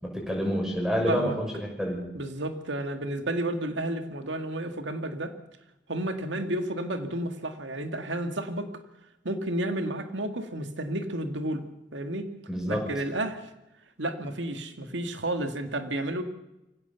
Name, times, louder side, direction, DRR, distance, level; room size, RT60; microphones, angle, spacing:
voice 1, 0.0-2.0 12.5-12.9, equal, 5° right, 0 dB, 6.1 m, -28 dB
voice 2, 1.1-1.4 2.1-5.3 5.9-8.7 9.2-11.6 11.9-12.3 12.7-13.4 14.0-16.2, right 1 dB, 85° right, 7 dB, 2.1 m, -31 dB
23.5 x 17.0 x 7.1 m, 0.94 s
head